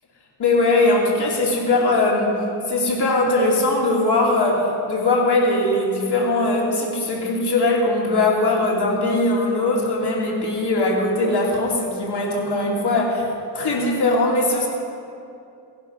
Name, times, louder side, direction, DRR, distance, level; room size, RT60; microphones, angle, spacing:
voice 1, 0.4-13.3 13.5-14.7, left 2 dB, 60° left, -2 dB, 2.9 m, -20 dB
16.5 x 11.0 x 5.6 m, 2.6 s
cardioid pair, 65°, 44 cm